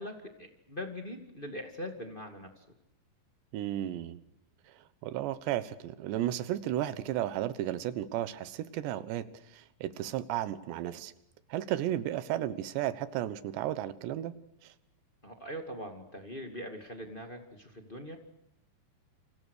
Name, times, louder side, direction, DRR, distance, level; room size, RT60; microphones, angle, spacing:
voice 1, 0.0-2.6 15.2-18.2, left 1 dB, 30° left, 5 dB, 0.9 m, -42 dB
voice 2, 3.5-4.2 5.0-11.1 11.5-14.3 14.6-14.7, right 12 dB, 80° right, 14 dB, 3.3 m, -34 dB
29.5 x 26.0 x 6.5 m, 0.80 s
omnidirectional pair, 5.1 m